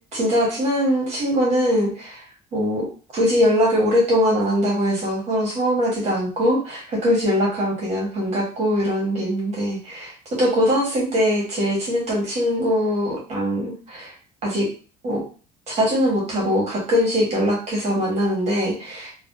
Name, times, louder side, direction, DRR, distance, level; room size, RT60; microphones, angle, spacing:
voice 1, 0.1-2.2 2.5-14.1 14.4-14.7 15.0-15.2 15.7-19.1, equal, 45° right, -3 dB, 1.3 m, -22 dB
3.3 x 2.3 x 2.6 m, 0.37 s
cardioid pair, 125°, 16 cm